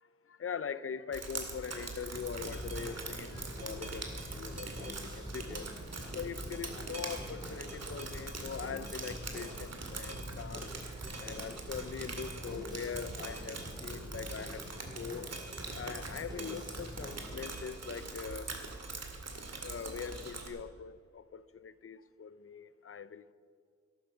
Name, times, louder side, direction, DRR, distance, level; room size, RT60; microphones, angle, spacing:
voice 1, 0.3-4.1 4.4-5.7 6.1-10.7 11.2-15.3 15.8-18.5 19.6-23.3, left 7 dB, 50° left, 0.6 m, -42 dB
Drip, 1.1-20.5, right 3 dB, 60° right, 2.1 m, -43 dB
sound 1, 2.1-17.5, equal, 15° right, 3.3 m, -46 dB
13.5 x 12.5 x 6.1 m
wide cardioid pair, 105°, 29 cm